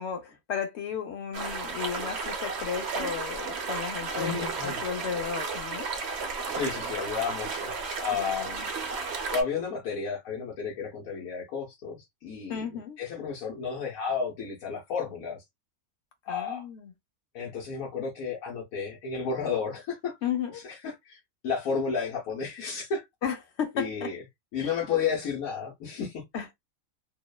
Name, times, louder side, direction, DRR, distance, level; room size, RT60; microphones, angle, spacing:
voice 1, 0.0-4.4 4.6-5.9 8.1-8.7 12.5-13.0 16.3-16.9 20.2-20.6 23.2-24.1 24.6-24.7 26.3-26.5, left 7 dB, 60° left, 0.8 m, -34 dB
sound 1, 1.3-9.4, right 4 dB, 60° right, 0.8 m, -33 dB
voice 2, 4.2-4.8 6.6-7.7 8.0-8.5 9.3-15.4 16.3-16.7 17.3-20.2 20.5-23.0 23.7-24.2 24.5-26.2, left 6 dB, 80° left, 1.2 m, -32 dB
3.0 x 2.0 x 2.2 m
omnidirectional pair, 1.5 m